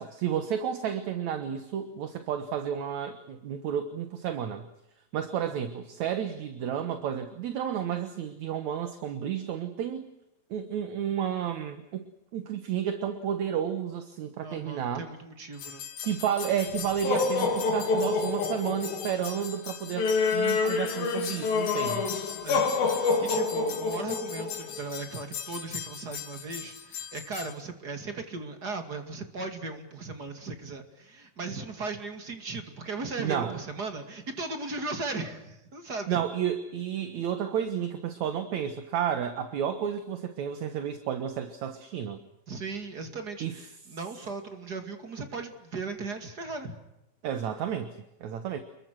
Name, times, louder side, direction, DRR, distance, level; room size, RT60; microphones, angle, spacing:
voice 1, 0.0-4.7 5.1-10.1 10.5-15.0 16.0-22.1 33.2-33.6 36.1-42.2 43.4-43.5 47.2-48.0 48.2-48.6, right 9 dB, 60° right, 9 dB, 2.4 m, -31 dB
voice 2, 14.4-15.8 22.4-36.2 42.5-46.8, right 3 dB, 30° right, 6 dB, 2.4 m, -37 dB
sound 1, 15.6-27.5, left 4 dB, 80° left, 4.6 m, -29 dB
29.5 x 22.0 x 6.3 m, 0.88 s
omnidirectional pair, 4.2 m